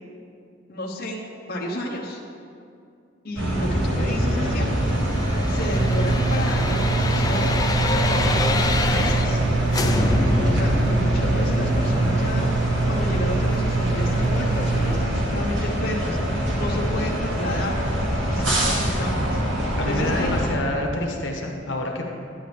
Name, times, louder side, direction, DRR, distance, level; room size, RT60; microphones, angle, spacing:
voice 1, 0.7-1.2 1.5-2.2 3.2-4.7 5.5-7.5 7.8-9.5 10.4-12.5 12.9-16.2 16.6-17.8 18.3-20.3, left 1 dB, 55° left, -3 dB, 1.0 m, -31 dB
sound 1, 3.4-20.5, equal, 85° right, 1.8 m, -24 dB
sound 2, 4.7-9.4 9.7-14.6 14.9-15.0, left 2 dB, 20° left, 0.4 m, -28 dB
sound 3, 5.7-15.0, right 4 dB, 20° right, 0.6 m, -25 dB
voice 2, 19.8-22.0, left 1 dB, 80° left, 1 dB, 1.1 m, -27 dB
10.5 x 9.7 x 3.3 m, 2.4 s
head